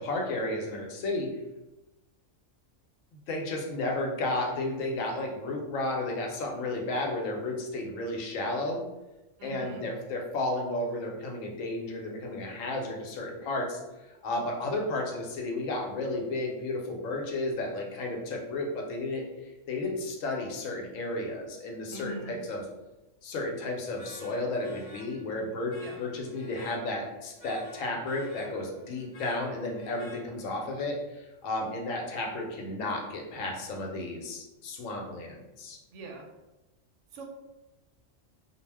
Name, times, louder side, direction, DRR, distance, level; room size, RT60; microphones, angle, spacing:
voice 1, 0.0-1.3 3.3-8.8 9.4-13.8 14.1-22.6 23.2-35.8, left 2 dB, 90° left, 1 dB, 1.0 m, -33 dB
voice 2, 9.4-9.9 21.9-22.4 25.8-26.1 35.9-36.2 37.1-37.2, right 2 dB, 70° right, 1 dB, 0.9 m, -41 dB
sound 1, 24.0-30.7, left 2 dB, 70° left, 0.4 m, -52 dB
2.3 x 2.1 x 3.3 m, 1.0 s
omnidirectional pair, 1.3 m